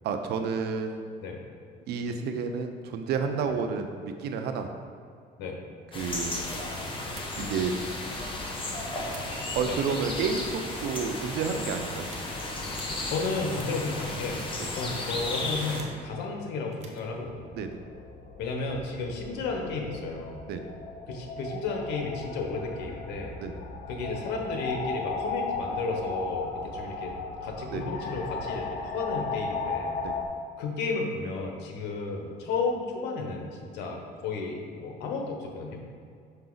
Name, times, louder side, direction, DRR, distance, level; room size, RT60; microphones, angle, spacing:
voice 1, 0.0-1.0 1.9-3.9 4.2-4.7 5.9-6.4 7.4-7.7 9.5-12.1 14.6-14.7 17.5-17.7 20.5-20.7 23.4-23.6 27.7-27.8 30.0-30.2, right 5 dB, 75° right, 6 dB, 0.7 m, -30 dB
sound 1, 5.9-15.8, left 2 dB, 30° left, 1.2 m, -34 dB
sound 2, 7.2-7.5 8.1-8.6 9.0-9.7 10.0-11.2 12.0-12.3 12.8-13.0 13.6-13.8 14.4-14.7 15.1-16.0 16.7-17.0, right 5 dB, 40° right, 0.9 m, -49 dB
voice 2, 13.1-14.4 14.7-17.5 18.4-20.4 21.1-23.3 23.9-27.1 27.4-29.9 30.6-35.8, left 3 dB, 85° left, 1 dB, 1.1 m, -33 dB
sound 3, 17.2-30.3, left 4 dB, 65° left, 0.7 m, -36 dB
5.8 x 5.5 x 3.9 m, 2.3 s
cardioid pair, 110°, 17 cm